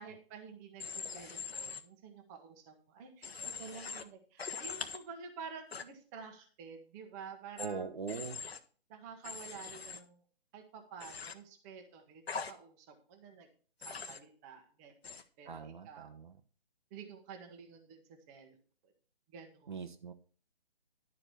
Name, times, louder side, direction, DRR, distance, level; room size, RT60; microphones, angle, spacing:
voice 1, 0.0-3.3 3.6-7.8 8.9-10.2 10.5-13.5 13.8-16.1 16.9-18.6 18.8-18.9 19.3-19.8, right 6 dB, 15° right, 4 dB, 1.2 m, -50 dB
Human voice / Train, 0.8-1.8 3.2-4.0 4.4-5.0 5.7-5.8 7.6-7.7 8.1-8.6 9.2-10.0 11.0-11.3 12.3-12.5 13.8-14.2 15.0-15.2, left 5 dB, 75° left, 1.2 m, -42 dB
voice 2, 7.6-8.4 15.4-16.4 19.7-20.1, right 5 dB, 50° right, 7 dB, 1.1 m, -41 dB
11.5 x 4.9 x 6.3 m, 0.40 s
figure-of-eight pair, 155°, 31 cm